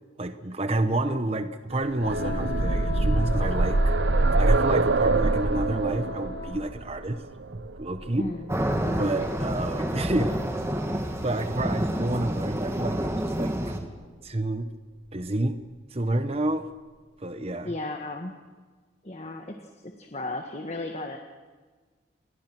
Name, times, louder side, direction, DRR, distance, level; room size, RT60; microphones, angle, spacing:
voice 1, 0.2-3.9 4.4-7.2 7.5-8.3 8.9-10.4 11.2-13.7 14.2-14.7 15.1-15.6 15.9-16.7 17.2-17.7, right 1 dB, 30° right, 9 dB, 1.0 m, -29 dB
sound 1, 1.8-9.6 10.8-10.9 11.2-11.3, right 3 dB, 65° right, 0.8 m, -25 dB
Wind instrument woodwind instrument, 2.0-6.7, left 5 dB, 50° left, 2.5 m, -37 dB
voice 2, 8.2-8.5 9.8-10.4 17.6-18.4 19.0-19.6 19.8-21.2, left 2 dB, 35° left, 4 dB, 1.7 m, -35 dB
sound 2, 8.5-13.8, right 1 dB, 15° right, 2.4 m, -29 dB
29.5 x 22.5 x 6.2 m, 1.4 s
head